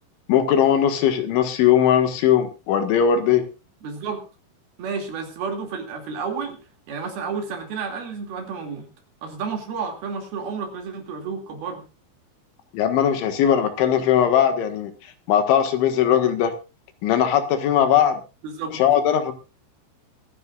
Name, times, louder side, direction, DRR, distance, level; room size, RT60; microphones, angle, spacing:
voice 1, 0.3-3.4 12.7-14.9 15.3-16.5 17.0-18.2 18.7-19.3, left 9 dB, 75° left, 7 dB, 3.9 m, -19 dB
voice 2, 3.8-4.3 4.8-6.6 6.9-8.9 9.2-11.9 18.4-18.8, right 5 dB, 55° right, 4 dB, 4.2 m, -31 dB
25.5 x 10.5 x 2.5 m, 0.30 s
omnidirectional pair, 5.5 m